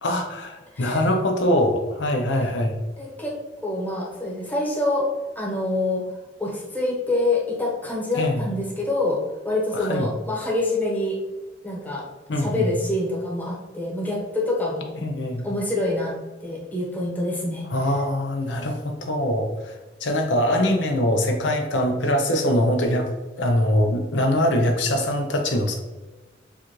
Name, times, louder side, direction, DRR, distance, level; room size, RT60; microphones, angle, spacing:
voice 1, 0.0-2.8 8.2-8.4 9.7-10.1 12.3-12.7 15.0-15.5 17.7-19.7 20.0-23.1 23.4-25.8, left 1 dB, 85° left, 4 dB, 0.7 m, -23 dB
voice 2, 3.0-3.4 3.6-5.1 5.3-6.0 6.4-11.2 11.6-12.1 12.4-14.9 15.4-17.7, left 2 dB, 10° left, -4 dB, 1.0 m, -26 dB
7.0 x 2.5 x 3.0 m, 1.2 s
head